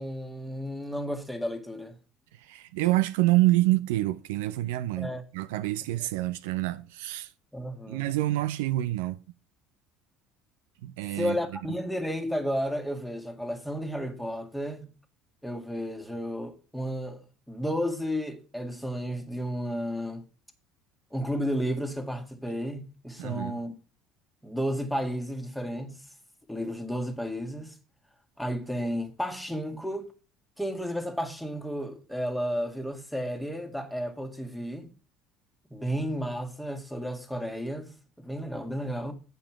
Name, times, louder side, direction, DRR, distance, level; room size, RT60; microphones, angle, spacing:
voice 1, 0.0-2.0 5.0-5.2 6.0-6.1 7.5-8.0 11.2-14.9 15.4-17.2 17.5-20.2 21.1-23.7 24.4-26.0 26.5-27.8 28.4-30.1 30.6-34.9 35.7-39.1, equal, 5° left, 1.8 m, -32 dB
voice 2, 2.3-7.3 7.9-9.2 10.8-11.4 23.2-23.6, right 17 dB, 75° right, 0.4 m, -27 dB
8.6 x 5.3 x 5.9 m
hypercardioid pair, 70°, 0 cm